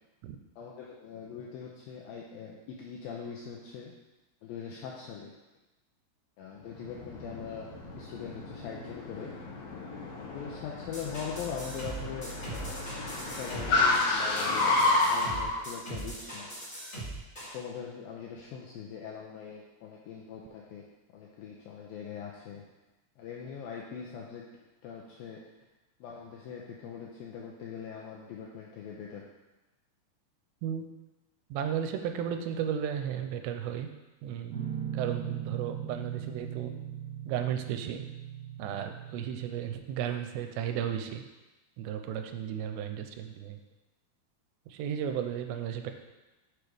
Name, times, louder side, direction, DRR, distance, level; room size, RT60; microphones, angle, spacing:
voice 1, 0.6-3.9 4.4-5.3 6.4-7.7 7.9-9.3 10.3-12.8 13.4-14.8 15.1-16.5 17.4-20.8 21.1-22.6 23.2-24.4 24.8-25.4 26.0-29.2, left 7 dB, 85° left, -2 dB, 2.1 m, -41 dB
Car, 6.7-15.6, left 2 dB, 65° left, 2.8 m, -31 dB
sound 1, 10.9-17.6, right 1 dB, 15° left, 1.8 m, -40 dB
voice 2, 31.5-33.9 34.2-34.5 34.9-36.7 37.3-38.0 38.6-41.2 41.8-43.6 44.7-45.9, right 9 dB, 85° right, 6 dB, 2.8 m, -34 dB
Guitar, 34.5-39.8, right 9 dB, 65° right, 2.9 m, -39 dB
6.8 x 4.6 x 5.0 m, 1.1 s
omnidirectional pair, 4.9 m